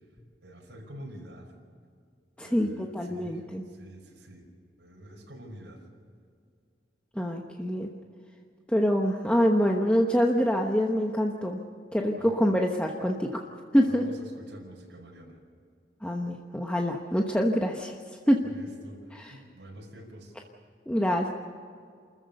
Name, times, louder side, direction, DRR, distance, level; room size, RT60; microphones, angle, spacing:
voice 1, 0.4-1.5 2.4-4.5 4.8-5.8 12.2-12.3 13.8-15.4 18.4-20.3, equal, 85° right, -1 dB, 5.4 m, -47 dB
voice 2, 2.4-3.6 7.2-7.9 8.7-11.6 11.9-13.4 13.7-14.0 16.0-18.0 18.3-18.4 19.2-19.3 20.9-21.3, equal, 5° left, 1 dB, 1.1 m, -25 dB
28.5 x 14.5 x 6.8 m, 2.3 s
head